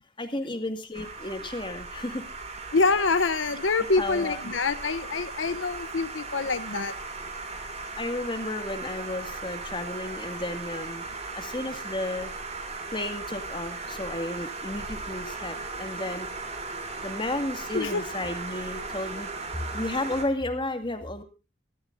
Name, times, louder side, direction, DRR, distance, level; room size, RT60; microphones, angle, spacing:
voice 1, 0.2-2.3 4.0-4.5 8.0-11.0 11.3-12.3 12.9-16.3 17.0-19.3 19.7-21.2, left 2 dB, 25° left, 8 dB, 2.1 m, -33 dB
sound 1, 0.9-20.3, right 3 dB, 35° right, 3.4 m, -37 dB
voice 2, 2.7-6.9 17.7-18.0, left 3 dB, 85° left, 13 dB, 0.9 m, -26 dB
24.0 x 14.0 x 2.6 m, 0.30 s
head